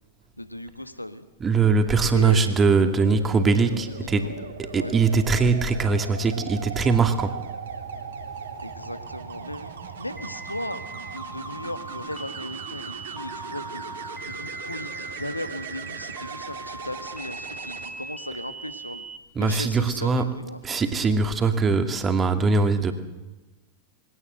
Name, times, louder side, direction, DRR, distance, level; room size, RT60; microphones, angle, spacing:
voice 1, 0.4-1.2 2.1-2.5 3.9-4.5 4.7-5.0 8.6-13.8 14.2-19.1 19.4-20.6, left 1 dB, 85° left, 10 dB, 1.6 m, -37 dB
voice 2, 1.4-4.3 4.7-7.4 19.4-20.3 20.6-22.9, right 4 dB, 20° right, 7 dB, 2.5 m, -21 dB
sound 1, 1.8-17.9 19.8-20.1, right 6 dB, 65° right, 3.5 m, -39 dB
sound 2, 10.2-19.2, right 3 dB, ahead, 1.4 m, -40 dB
23.0 x 18.0 x 8.0 m, 1.1 s
figure-of-eight pair, 90°, 0 cm